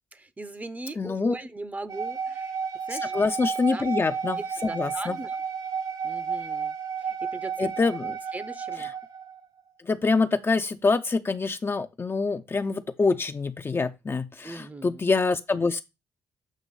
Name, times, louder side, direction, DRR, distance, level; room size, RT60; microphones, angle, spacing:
voice 1, 0.1-2.6 2.9-3.1 3.7-4.0 4.6-5.4 6.0-6.7 7.0-7.7 8.3-8.9 14.4-15.0, right 2 dB, 20° right, 0.7 m, -39 dB
voice 2, 1.0-1.3 3.1-5.2 7.6-8.2 8.8-8.9 9.8-15.8, left 4 dB, 30° left, 0.6 m, -25 dB
sound 1, 1.9-9.4, right 6 dB, 55° right, 1.5 m, -32 dB
7.5 x 2.9 x 5.4 m
supercardioid pair, 55°, 8 cm